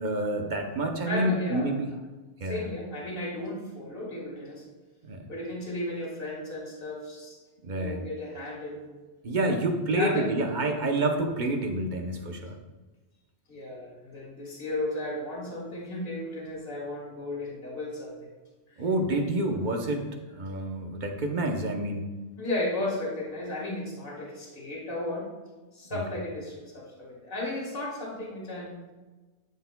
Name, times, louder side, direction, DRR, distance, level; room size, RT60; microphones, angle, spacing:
voice 1, 0.0-1.9 2.4-2.6 5.0-5.3 7.6-8.0 9.2-12.5 18.8-20.1 20.3-22.1 25.9-26.0, right 1 dB, 45° right, 3 dB, 0.9 m, -28 dB
voice 2, 1.1-1.8 2.4-4.6 5.3-7.4 7.8-8.9 9.9-10.3 13.5-18.2 18.7-18.8 19.1-19.2 22.4-25.3 25.7-28.8, left 1 dB, 50° left, -4 dB, 1.9 m, -34 dB
11.5 x 4.7 x 2.2 m, 1.2 s
omnidirectional pair, 1.2 m